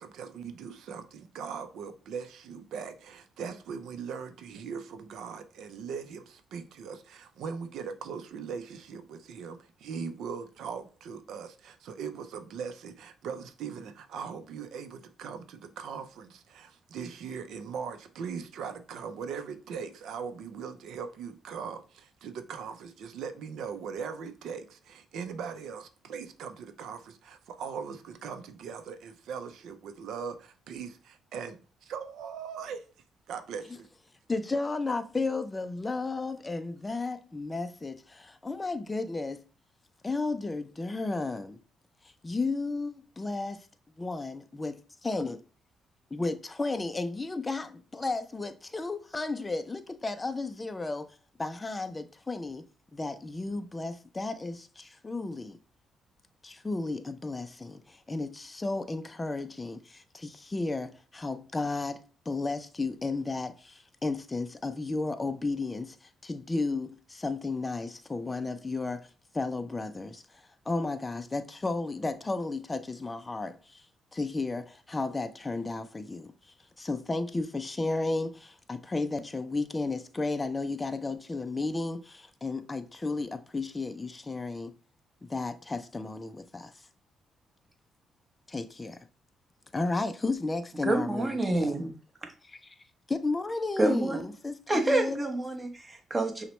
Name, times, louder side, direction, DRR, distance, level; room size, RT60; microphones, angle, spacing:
voice 1, 0.0-32.8 33.3-33.9, right 6 dB, 75° right, 0.5 m, -40 dB
voice 2, 34.3-39.4 40.0-41.6 42.2-43.7 44.0-44.8 45.0-45.4 46.1-51.1 51.4-52.6 52.9-55.6 56.4-62.0 62.3-69.1 69.3-73.8 74.1-84.7 85.3-86.9 88.5-89.0 89.7-91.8 92.5-92.8 93.1-95.3, left 3 dB, 20° left, 0.4 m, -33 dB
voice 3, 90.8-91.9 93.8-94.2 94.7-96.4, right 2 dB, 20° right, 1.0 m, -27 dB
5.6 x 2.1 x 3.1 m
cardioid pair, 90°, 0 cm